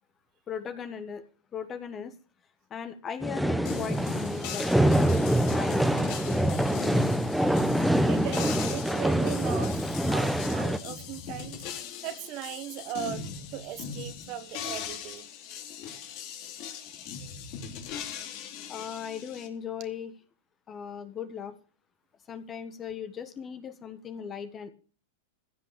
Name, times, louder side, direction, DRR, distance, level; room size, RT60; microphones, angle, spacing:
voice 1, 0.5-1.2 1.5-2.1 2.7-7.0 18.7-20.1 20.7-21.5 22.3-24.7, left 7 dB, 30° left, 1.5 m, -38 dB
sound 1, 3.2-10.8, right 1 dB, ahead, 1.0 m, -25 dB
sound 2, 3.6-19.5, left 8 dB, 50° left, 3.0 m, -40 dB
voice 2, 8.1-11.6 12.0-15.3, right 12 dB, 45° right, 1.6 m, -38 dB
15.5 x 6.0 x 6.9 m
hypercardioid pair, 115°, 0 cm